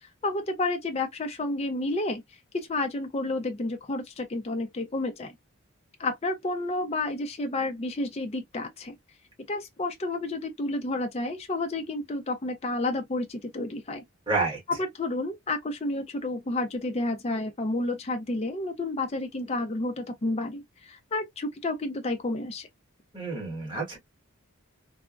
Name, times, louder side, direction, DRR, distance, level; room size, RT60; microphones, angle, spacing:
voice 1, 0.2-2.2 2.5-5.3 6.0-9.0 9.5-14.0 14.8-22.7, left 2 dB, 30° left, 0.4 m, -30 dB
voice 2, 14.3-14.6 23.1-24.0, right 3 dB, 20° right, 1.4 m, -29 dB
3.4 x 2.0 x 2.4 m
head